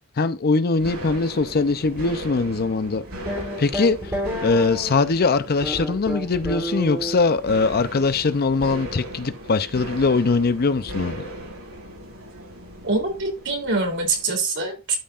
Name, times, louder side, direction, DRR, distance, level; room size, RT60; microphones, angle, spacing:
voice 1, 0.2-3.0 3.6-4.1 4.4-11.2, left 4 dB, 45° left, 0.6 m, -21 dB
sound 1, 0.8-14.2, equal, 85° right, 5.8 m, -37 dB
sound 2, 3.2-5.1 5.6-7.2, equal, 15° right, 3.3 m, -29 dB
voice 2, 12.8-15.0, right 3 dB, 60° right, 3.3 m, -24 dB
12.5 x 5.7 x 2.5 m
head